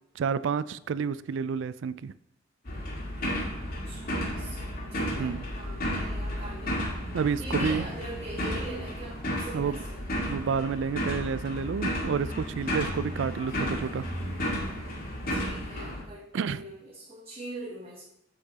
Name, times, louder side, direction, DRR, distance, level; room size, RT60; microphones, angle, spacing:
voice 1, 0.2-2.1 5.2-5.4 7.1-7.9 9.5-9.8 10.3-14.1 16.3-16.6, right 6 dB, 70° right, 17 dB, 0.4 m, -30 dB
sound 1, 2.6-16.0, equal, 50° left, 1.9 m, -33 dB
voice 2, 3.8-6.9 7.4-10.1 15.3-18.0, right 1 dB, 30° right, -3 dB, 1.2 m, -42 dB
7.6 x 6.8 x 4.0 m, 0.81 s
head